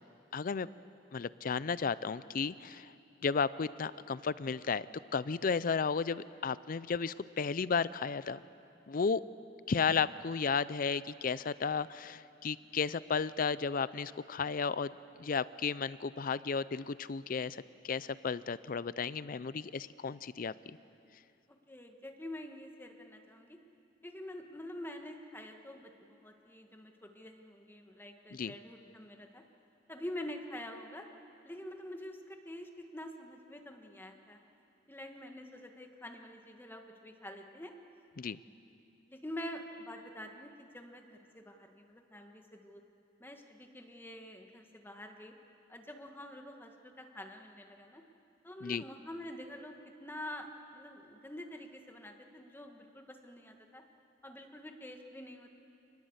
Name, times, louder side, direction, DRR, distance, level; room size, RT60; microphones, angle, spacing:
voice 1, 0.3-0.7 1.1-2.9 3.2-4.9 5.1-8.4 8.9-9.2 9.7-14.9 15.2-20.5 28.3-28.5 38.2-38.4 48.6-48.8, left 5 dB, 50° left, 17 dB, 0.5 m, -33 dB
voice 2, 21.7-23.6 24.0-29.4 29.9-31.1 31.4-34.4 34.9-37.7 39.0-42.8 43.2-45.3 45.7-48.0 48.4-53.8 54.2-55.5, left 1 dB, 10° left, 4 dB, 1.6 m, -46 dB
27.0 x 20.5 x 8.0 m, 2.6 s
head